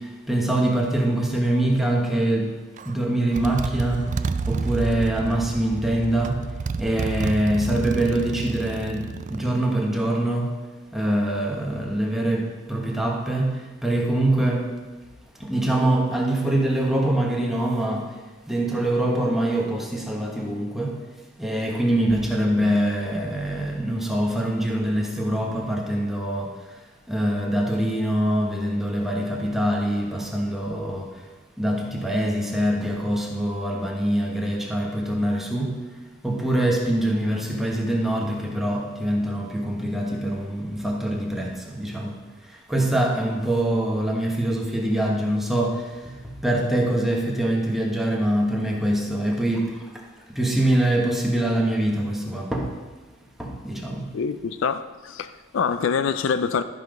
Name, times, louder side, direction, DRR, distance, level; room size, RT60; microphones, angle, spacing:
voice 1, 0.0-2.5 2.8-4.1 4.5-6.4 6.8-10.5 10.9-14.7 15.4-18.1 18.5-21.0 21.4-26.5 27.1-31.1 31.6-35.8 36.2-42.2 42.7-46.2 46.4-49.7 50.3-52.7 53.4-54.1, right 1 dB, ahead, 1.3 m, -24 dB
Motorcycle, 2.8-2.9 3.3-9.5, right 4 dB, 40° right, 0.3 m, -30 dB
voice 2, 54.1-56.6, left 6 dB, 70° left, 0.4 m, -25 dB
12.0 x 5.7 x 5.2 m
head